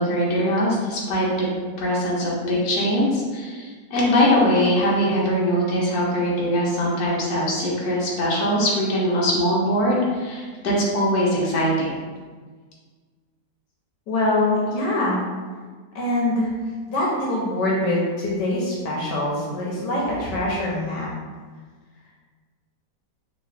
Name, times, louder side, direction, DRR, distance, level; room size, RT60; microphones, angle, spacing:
voice 1, 0.0-1.5 1.8-11.9, equal, 65° left, -5 dB, 1.4 m, -22 dB
voice 2, 14.1-15.2 15.9-16.5 16.9-21.1, left 1 dB, 80° left, -5 dB, 1.4 m, -23 dB
3.7 x 3.0 x 3.3 m, 1.5 s
omnidirectional pair, 1.9 m